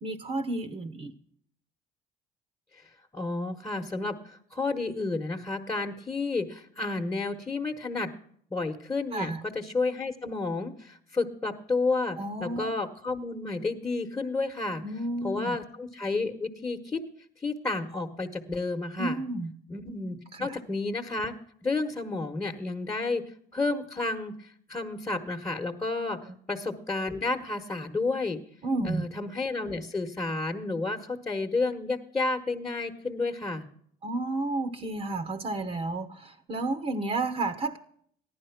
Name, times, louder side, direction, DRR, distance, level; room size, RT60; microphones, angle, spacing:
voice 1, 0.0-1.1 9.1-9.4 12.2-12.7 14.8-15.6 19.0-19.5 20.3-20.6 26.3-26.4 28.6-29.0 34.0-37.8, right 2 dB, 40° right, 9 dB, 1.0 m, -31 dB
voice 2, 3.1-8.1 8.5-14.8 15.2-17.0 17.4-19.2 19.7-21.3 21.6-23.2 23.5-28.4 28.8-33.7, left 3 dB, 15° left, 1 dB, 1.3 m, -31 dB
15.0 x 11.0 x 5.9 m, 0.63 s
cardioid pair, 110°, 17 cm